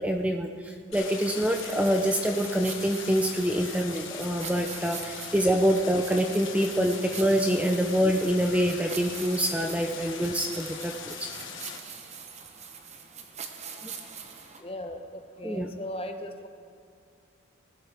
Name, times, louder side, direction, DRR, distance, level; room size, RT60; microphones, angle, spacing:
voice 1, 0.0-11.3 13.8-13.9 15.4-15.7, equal, 5° right, 3 dB, 0.5 m, -26 dB
Stream, 0.9-11.8, left 6 dB, 70° left, 1.5 m, -40 dB
sound 1, 1.2-14.6, right 6 dB, 35° right, 0.9 m, -43 dB
voice 2, 14.6-16.5, left 1 dB, 30° left, 6 dB, 0.8 m, -37 dB
20.0 x 12.0 x 3.5 m, 2.5 s
head